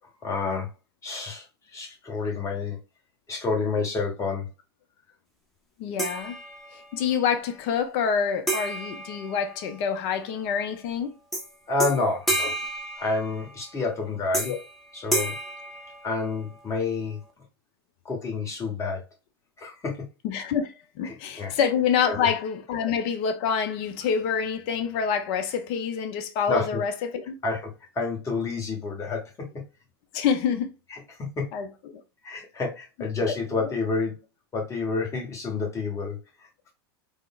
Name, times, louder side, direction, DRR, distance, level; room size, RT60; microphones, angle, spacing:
voice 1, 0.2-0.7 1.0-1.4 1.7-2.8 3.3-4.5 11.7-12.6 13.0-14.5 14.9-15.3 16.0-17.2 18.0-19.0 19.6-20.1 21.0-21.5 22.1-22.3 26.5-26.8 27.4-29.6 31.1-31.5 32.2-34.2 34.5-36.2, left 4 dB, 25° left, 1.2 m, -29 dB
voice 2, 5.8-6.3 6.7-11.1 12.4-12.5 14.4-14.6 20.2-27.4 30.1-30.7 31.5-32.0 33.3-33.4, left 7 dB, 50° left, 0.5 m, -27 dB
sound 1, 6.0-7.0 8.5-10.0 11.3-11.5 11.8-13.6 14.3-14.7 15.1-16.5, right 2 dB, ahead, 0.7 m, -31 dB
3.5 x 2.0 x 2.3 m
hypercardioid pair, 100°, 13 cm